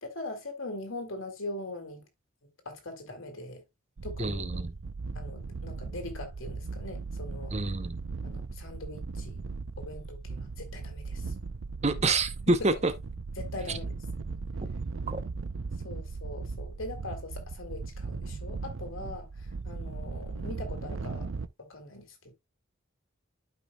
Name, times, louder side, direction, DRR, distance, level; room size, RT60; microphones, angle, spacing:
voice 1, 0.0-2.0 2.7-3.6 4.0-4.6 5.1-7.6 8.2-9.4 9.8-11.3 12.4-12.7 13.4-13.9 15.8-21.3 21.6-22.3, left 2 dB, 75° left, 2.4 m, -41 dB
sound 1, 4.0-21.5, right 4 dB, 75° right, 0.6 m, -38 dB
voice 2, 4.2-4.7 7.5-8.0 11.8-12.9 13.7-13.8 15.1-15.2, right 3 dB, 35° right, 0.8 m, -27 dB
12.0 x 5.0 x 2.3 m
head